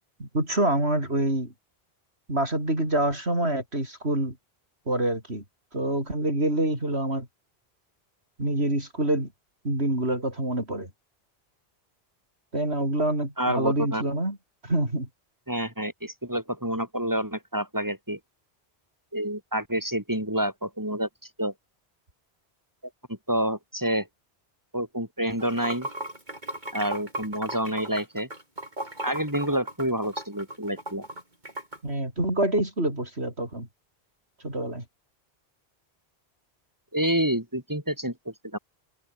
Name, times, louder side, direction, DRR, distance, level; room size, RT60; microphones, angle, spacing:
voice 1, 0.2-1.5 2.3-4.4 4.9-5.4 5.7-7.3 8.4-9.3 9.6-10.9 12.5-14.4 14.6-15.1 31.8-33.7 34.4-34.8, right 1 dB, 80° right, 7.7 m, -26 dB
voice 2, 13.4-14.0 15.5-18.2 19.1-21.1 21.4-21.5 23.1-24.1 24.7-25.9 26.7-28.3 29.0-31.0 36.9-38.6, right 1 dB, 15° right, 6.2 m, -28 dB
Water / Sink (filling or washing), 25.3-31.8, right 1 dB, 45° right, 7.8 m, -36 dB
open air
omnidirectional pair, 1.1 m